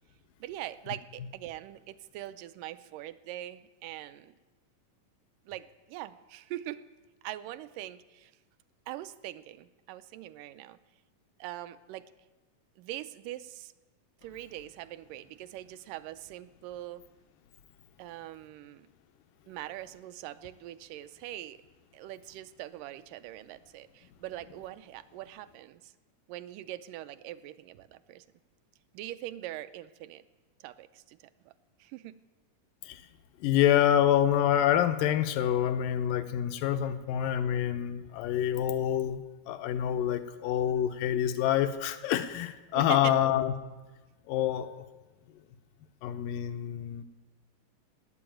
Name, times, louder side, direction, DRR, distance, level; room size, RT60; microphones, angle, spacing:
voice 1, 0.4-4.4 5.5-6.8 7.2-8.3 8.9-10.8 11.4-12.1 12.8-13.7 14.2-17.0 18.0-18.9 19.5-21.6 21.9-25.9 26.3-28.3 28.9-30.2 30.6-31.2 31.5-31.6 31.8-32.2 42.7-43.2, right 14 dB, 80° right, 13 dB, 2.2 m, -42 dB
voice 2, 33.4-43.5 44.3-44.8 46.0-47.0, left 10 dB, 90° left, 10 dB, 2.5 m, -27 dB
18.5 x 8.6 x 8.9 m, 1.2 s
omnidirectional pair, 3.8 m